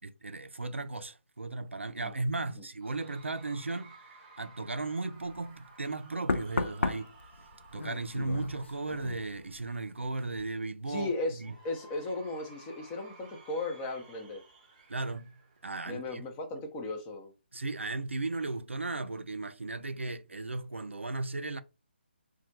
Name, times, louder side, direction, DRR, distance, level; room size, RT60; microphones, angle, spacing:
voice 1, 0.0-4.0 4.4-7.1 7.7-11.1 11.4-11.5 14.9-15.3 15.6-16.2 17.5-21.6, right 2 dB, 90° right, 0.4 m, -36 dB
Cheering / Crowd, 2.8-10.1 11.4-16.1, right 3 dB, 25° right, 0.7 m, -56 dB
Knock, 5.2-5.4 6.3-9.8 10.0-10.4, left 3 dB, 80° left, 0.4 m, -35 dB
voice 2, 10.9-14.4 15.9-17.3, left 2 dB, 20° left, 0.5 m, -36 dB
2.2 x 2.1 x 2.8 m
figure-of-eight pair, 145°, 6 cm